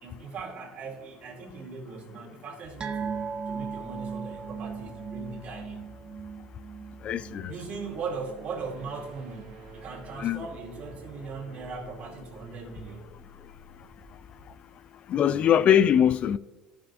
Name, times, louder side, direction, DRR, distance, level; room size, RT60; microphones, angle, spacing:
voice 1, 0.0-5.9 7.5-13.1, right 4 dB, 55° right, 2.3 m, -39 dB
sound 1, 2.6-14.6, left 2 dB, 30° left, 2.7 m, -52 dB
sound 2, 2.8-9.6 9.9-10.1 10.5-10.6, right 6 dB, 35° right, 0.6 m, -38 dB
voice 2, 7.0-7.5 10.2-10.5 15.1-16.4, left 9 dB, 50° left, 0.3 m, -22 dB
sound 3, 7.1-13.8, right 5 dB, 75° right, 1.7 m, -51 dB
13.0 x 6.3 x 2.6 m
hypercardioid pair, 80°, 3 cm